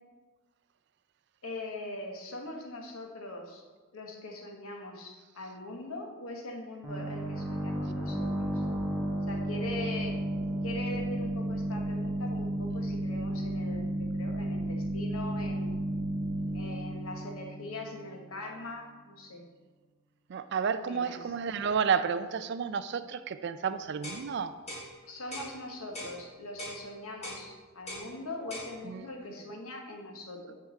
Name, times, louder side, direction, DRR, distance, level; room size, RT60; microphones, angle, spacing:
voice 1, 1.4-3.6 3.9-8.6 9.3-10.2 10.6-15.8 16.5-19.4 20.7-21.3 25.1-30.5, left 2 dB, 90° left, 1.3 m, -41 dB
sound 1, 6.8-18.3, right 1 dB, 5° right, 1.2 m, -33 dB
voice 2, 20.3-24.5 28.8-29.1, right 6 dB, 55° right, 0.4 m, -31 dB
sound 2, 24.0-24.2 24.7-24.9 25.3-25.5 25.9-26.2 26.6-26.8 27.2-27.4 27.9-28.1 28.5-28.7, left 1 dB, 30° left, 1.6 m, -40 dB
5.7 x 4.7 x 6.4 m
head